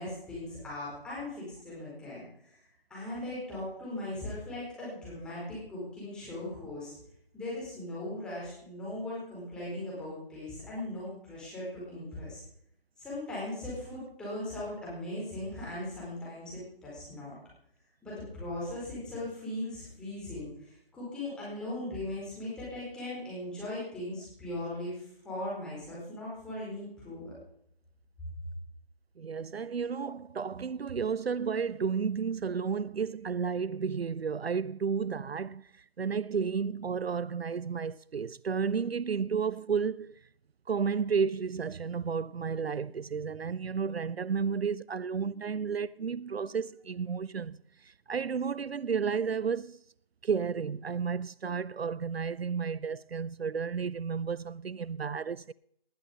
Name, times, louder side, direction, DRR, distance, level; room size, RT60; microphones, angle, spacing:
voice 1, 0.0-2.6 2.9-6.9 7.3-12.4 13.0-17.3 18.0-27.3, left 1 dB, 5° left, 4.5 m, -39 dB
voice 2, 29.2-40.2 40.7-49.8 50.2-55.5, right 6 dB, 80° right, 0.5 m, -32 dB
19.5 x 11.0 x 5.4 m
figure-of-eight pair, 160°, 30 cm